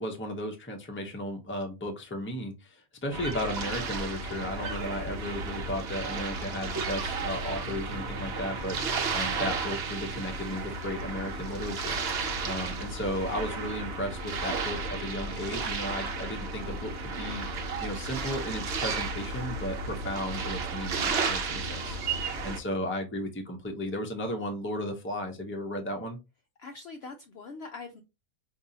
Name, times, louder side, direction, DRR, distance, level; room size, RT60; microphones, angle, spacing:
voice 1, 0.0-12.0 12.4-17.5 17.8-22.0 22.4-26.2, left 1 dB, 15° left, 0.5 m, -35 dB
sound 1, 3.1-22.6, right 4 dB, 55° right, 0.9 m, -33 dB
voice 2, 26.6-28.0, left 4 dB, 65° left, 0.6 m, -43 dB
5.2 x 2.7 x 2.7 m
omnidirectional pair, 1.5 m